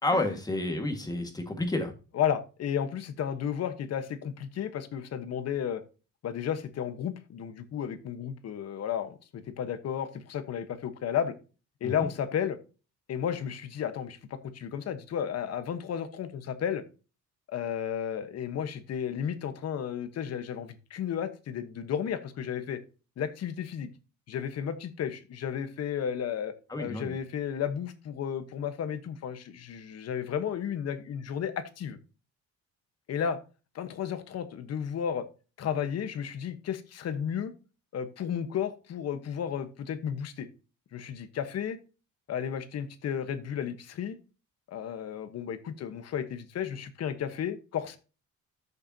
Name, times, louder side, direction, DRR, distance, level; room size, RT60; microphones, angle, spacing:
voice 1, 0.0-1.9 11.8-12.1 26.7-27.1, left 2 dB, 10° left, 5 dB, 1.8 m, -30 dB
voice 2, 2.1-5.8 6.2-11.3 11.8-12.6 13.1-16.8 17.5-22.8 23.2-23.9 24.3-26.5 26.8-32.0 33.1-33.4 33.7-35.3 35.6-37.5 37.9-40.5 40.9-41.8 42.3-44.2 44.7-48.0, left 8 dB, 55° left, 11 dB, 1.2 m, -33 dB
13.5 x 6.7 x 2.8 m, 0.33 s
cardioid pair, 165°, 31 cm